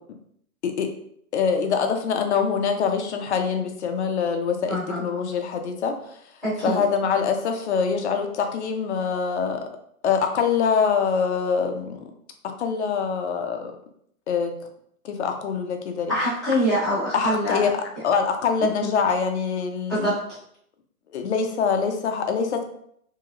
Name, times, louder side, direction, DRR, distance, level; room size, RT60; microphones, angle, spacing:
voice 1, 1.3-6.2 6.6-9.7 10.0-12.0 12.6-13.7 14.3-14.5 15.0-16.1 17.1-20.1 21.1-22.6, left 6 dB, 55° left, 5 dB, 0.5 m, -24 dB
voice 2, 4.7-5.0 6.4-6.8 16.1-17.6 18.6-18.9 19.9-20.2, equal, ahead, -16 dB, 0.8 m, -24 dB
2.9 x 2.7 x 2.4 m, 0.68 s
hypercardioid pair, 170°, 42 cm